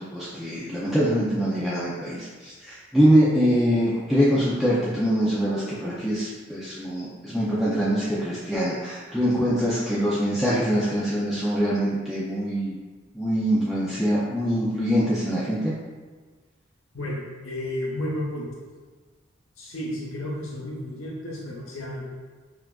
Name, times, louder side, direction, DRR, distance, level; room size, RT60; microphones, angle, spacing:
voice 1, 0.0-12.8 13.1-15.7, equal, ahead, -9 dB, 0.4 m, -24 dB
voice 2, 16.9-18.6 19.6-22.0, left 1 dB, 90° left, -4 dB, 1.0 m, -32 dB
5.7 x 2.4 x 2.3 m, 1.4 s
head